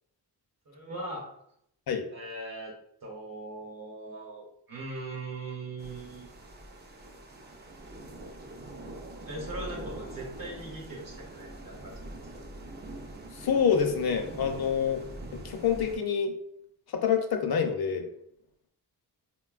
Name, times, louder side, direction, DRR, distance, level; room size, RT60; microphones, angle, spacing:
voice 1, 0.7-1.3 2.1-2.7 3.0-6.3 9.2-12.1, right 2 dB, 55° right, -2 dB, 0.9 m, -40 dB
sound 1, 5.8-16.0, right 1 dB, 25° right, 0.4 m, -43 dB
voice 2, 13.3-15.0 15.3-16.3 16.9-18.1, left 7 dB, 65° left, 5 dB, 0.5 m, -27 dB
3.8 x 2.2 x 2.3 m, 0.74 s
wide cardioid pair, 95°, 41 cm